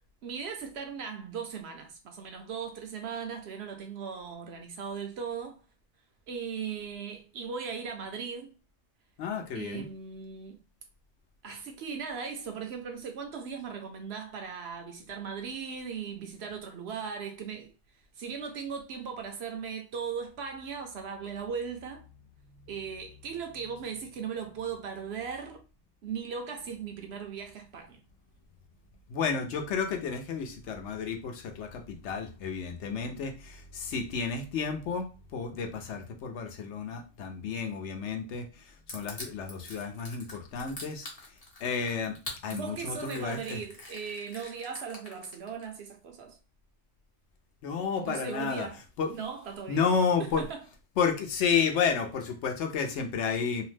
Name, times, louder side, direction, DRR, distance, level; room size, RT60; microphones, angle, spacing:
voice 1, 0.2-5.6 6.3-8.5 9.5-10.6 11.4-17.7 18.2-22.0 22.7-25.6 26.0-28.0 32.9-33.2 42.5-46.4 48.0-48.8 49.1-49.8 50.2-50.6, right 6 dB, 65° right, 0.7 m, -38 dB
voice 2, 9.2-9.8 29.1-41.1 41.6-42.2 42.4-43.6 47.6-48.7 49.0-49.1 49.7-50.4 51.0-53.6, left 6 dB, 70° left, 0.8 m, -31 dB
Crushing, 38.9-45.6, left 2 dB, 35° left, 0.8 m, -44 dB
2.7 x 2.0 x 3.1 m
omnidirectional pair, 1.3 m